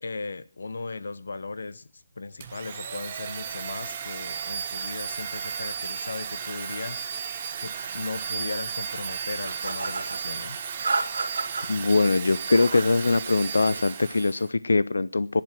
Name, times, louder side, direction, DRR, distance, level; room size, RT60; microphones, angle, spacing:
voice 1, 0.0-7.0 7.6-10.7, left 3 dB, 55° left, 1.1 m, -37 dB
Domestic sounds home sounds, 2.4-14.5, right 7 dB, 20° right, 1.1 m, -34 dB
sound 1, 9.4-10.2 10.8-11.7 12.3-12.9 13.3-13.8, right 3 dB, 50° right, 4.2 m, -31 dB
voice 2, 11.7-15.4, left 3 dB, 80° left, 0.6 m, -22 dB
17.0 x 11.0 x 6.0 m
hypercardioid pair, 180°, 0 cm